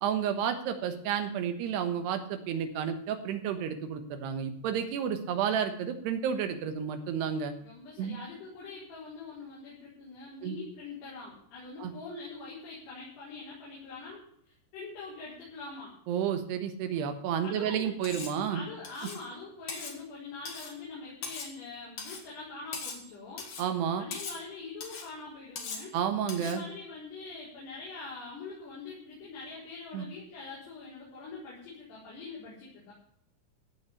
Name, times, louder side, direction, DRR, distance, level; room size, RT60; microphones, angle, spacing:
voice 1, 0.0-7.5 8.0-8.2 10.4-10.6 11.8-11.9 16.1-18.6 23.6-24.0 25.9-26.6 29.9-30.1, right 8 dB, 85° right, 7 dB, 3.4 m, -31 dB
voice 2, 7.6-15.9 17.4-18.2 18.5-23.5 24.0-26.0 26.4-32.9, left 4 dB, 85° left, -8 dB, 6.5 m, -44 dB
Cutlery silverware, 18.0-18.4 18.8-19.2 19.7-20.0 20.4-20.8 21.2-21.6 22.0-22.3 22.7-23.1 23.4-23.7 24.1-24.4 24.8-25.1 25.6-25.9 26.3-26.6, left 4 dB, 50° left, 3.0 m, -40 dB
15.5 x 5.8 x 8.3 m, 0.68 s
omnidirectional pair, 4.6 m